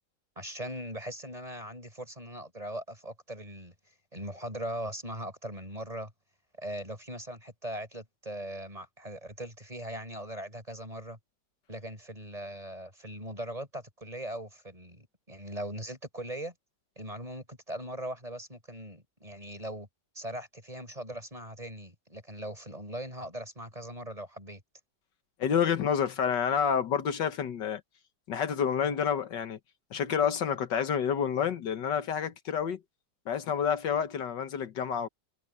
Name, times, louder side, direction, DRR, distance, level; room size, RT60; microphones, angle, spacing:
voice 1, 0.4-3.7 4.1-6.1 6.6-11.2 11.7-16.5 17.0-19.9 20.1-24.6, right 1 dB, 20° right, 5.4 m, -40 dB
voice 2, 25.4-27.8 28.3-29.6 29.9-32.8 33.3-35.1, left 7 dB, 85° left, 1.9 m, -29 dB
omnidirectional pair, 1.9 m